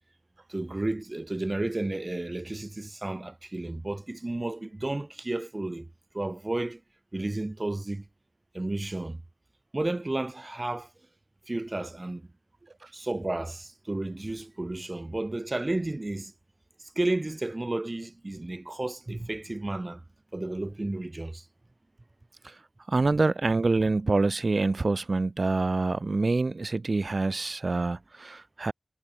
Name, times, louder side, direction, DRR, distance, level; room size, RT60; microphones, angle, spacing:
voice 1, 0.5-5.9 6.1-6.8 7.1-8.1 8.5-9.2 9.7-10.9 11.5-12.3 12.9-16.3 16.8-20.0 20.3-21.4, right 2 dB, 30° right, 1.2 m, -32 dB
voice 2, 22.9-28.7, right 3 dB, 55° right, 0.7 m, -26 dB
wide cardioid pair, 70°, 0 cm